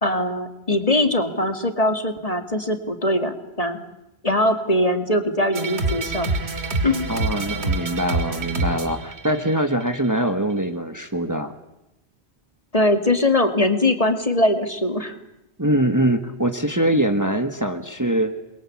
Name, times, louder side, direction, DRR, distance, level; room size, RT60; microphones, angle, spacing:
voice 1, 0.0-3.8 4.2-6.3 6.8-7.1 12.7-15.1, left 1 dB, 35° left, 8 dB, 2.5 m, -21 dB
sound 1, 5.5-10.0, right 2 dB, 75° right, 2.7 m, -26 dB
voice 2, 7.1-11.5 15.6-18.3, right 1 dB, 15° right, 7 dB, 1.7 m, -23 dB
28.5 x 23.0 x 8.7 m, 0.90 s
omnidirectional pair, 1.1 m